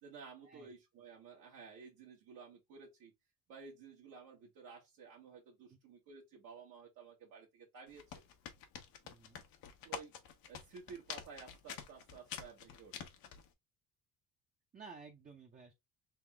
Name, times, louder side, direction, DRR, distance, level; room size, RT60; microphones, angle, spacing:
voice 1, 0.0-3.1 3.5-8.2 9.8-10.1 10.5-13.1, right 5 dB, 70° right, 1.2 m, -54 dB
sound 1, 7.9-13.5, left 8 dB, 85° left, 1.0 m, -47 dB
voice 2, 9.0-9.4 14.7-15.7, right 5 dB, 25° right, 0.6 m, -54 dB
3.5 x 2.9 x 3.4 m
cardioid pair, 140°, 34 cm